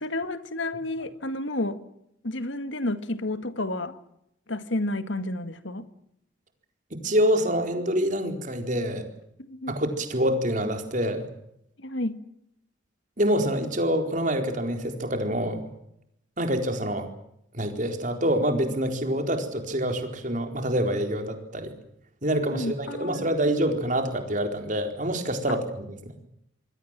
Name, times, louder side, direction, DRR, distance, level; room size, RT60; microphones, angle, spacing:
voice 1, 0.0-1.8 2.2-4.0 4.5-5.9 9.4-9.7 11.8-12.2 22.5-23.3 25.5-25.6, left 1 dB, 75° left, 11 dB, 1.9 m, -31 dB
voice 2, 6.9-9.1 9.7-11.2 13.2-15.7 16.4-17.1 17.5-21.7 22.2-26.1, equal, 40° right, 5 dB, 4.2 m, -26 dB
27.5 x 22.0 x 7.5 m, 0.77 s
head